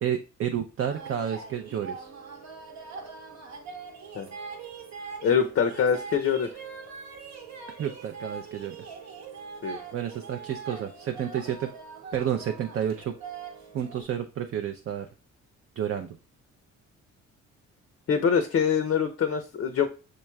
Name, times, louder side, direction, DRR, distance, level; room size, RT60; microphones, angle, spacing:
voice 1, 0.0-2.1 7.8-8.8 9.9-11.7 12.1-13.1 13.7-15.1 15.8-16.1, right 9 dB, 45° right, 5 dB, 0.5 m, -30 dB
sound 1, 0.8-14.0, right 5 dB, 65° right, 1.0 m, -42 dB
voice 2, 5.2-6.5 9.6-9.8 18.1-19.9, left 7 dB, 45° left, 6 dB, 0.5 m, -24 dB
6.4 x 3.0 x 2.2 m, 0.34 s
cardioid pair, 90°, 30 cm